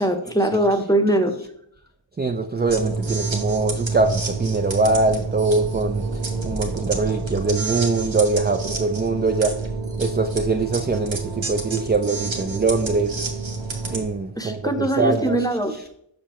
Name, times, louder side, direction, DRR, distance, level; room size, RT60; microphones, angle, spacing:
voice 1, 0.0-1.3 14.4-15.7, right 1 dB, 10° left, 6 dB, 0.8 m, -21 dB
voice 2, 2.2-6.1 6.4-9.5 10.0-11.2 11.5-13.1 13.9-14.6 15.0-15.4, right 3 dB, 25° right, 5 dB, 0.4 m, -22 dB
sound 1, 2.6-14.0, right 3 dB, 80° right, 1.1 m, -28 dB
6.7 x 5.7 x 3.0 m, 0.72 s
wide cardioid pair, 50°, 45 cm